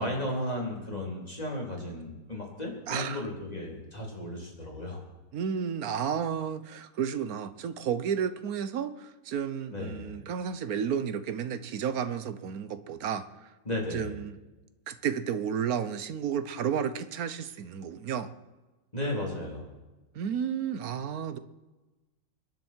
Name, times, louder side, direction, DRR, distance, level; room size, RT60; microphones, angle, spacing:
voice 1, 0.0-5.0 9.7-10.2 13.7-14.1 18.9-19.7, left 1 dB, 20° left, -2 dB, 3.8 m, -34 dB
voice 2, 2.9-3.2 5.3-13.3 13.9-14.4 14.9-18.3 20.1-21.4, right 7 dB, 60° right, 12 dB, 1.2 m, -32 dB
26.0 x 10.5 x 4.6 m, 1.2 s
omnidirectional pair, 2.0 m